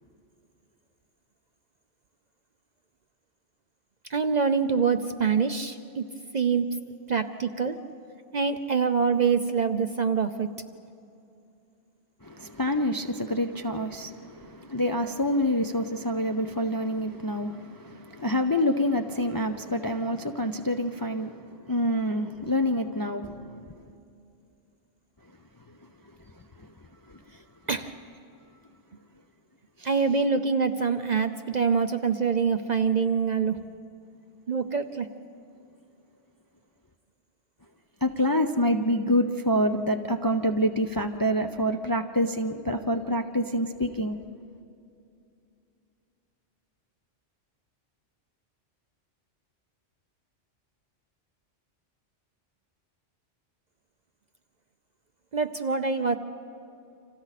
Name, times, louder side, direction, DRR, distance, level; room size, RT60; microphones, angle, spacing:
voice 1, 4.1-6.1 6.3-6.8 7.1-7.8 8.3-10.5 27.7-27.9 29.8-33.6 34.5-35.1 55.3-56.1, right 5 dB, 45° right, 0.6 m, -25 dB
voice 2, 12.2-24.0 26.6-26.7 27.1-27.2 29.8-29.9 38.0-44.2, equal, 25° left, 0.5 m, -27 dB
29.5 x 26.5 x 4.2 m
omnidirectional pair, 1.2 m